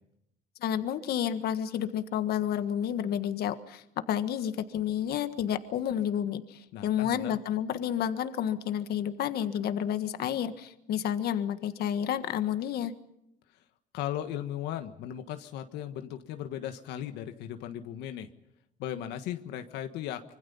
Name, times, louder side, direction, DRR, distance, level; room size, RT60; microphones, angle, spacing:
voice 1, 0.6-3.8 4.1-12.9, left 9 dB, 70° left, 10 dB, 1.6 m, -30 dB
voice 2, 6.7-7.4 13.9-18.3 18.8-20.3, left 11 dB, 90° left, 7 dB, 1.5 m, -37 dB
25.5 x 24.5 x 5.6 m, 0.80 s
cardioid pair, 110°, 17 cm